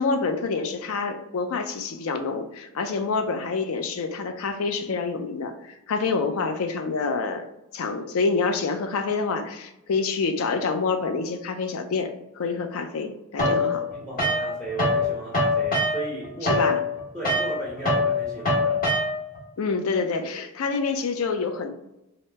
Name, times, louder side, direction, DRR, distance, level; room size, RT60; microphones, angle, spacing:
voice 1, 0.0-7.5 7.7-13.8 16.4-16.8 19.6-21.7, left 4 dB, 70° left, 6 dB, 0.4 m, -27 dB
sound 1, 13.4-15.0 15.3-19.4, left 2 dB, 40° left, 0.8 m, -24 dB
voice 2, 13.4-16.7 17.1-18.9, right 2 dB, 5° left, -5 dB, 0.5 m, -35 dB
2.8 x 2.0 x 3.3 m, 0.88 s
head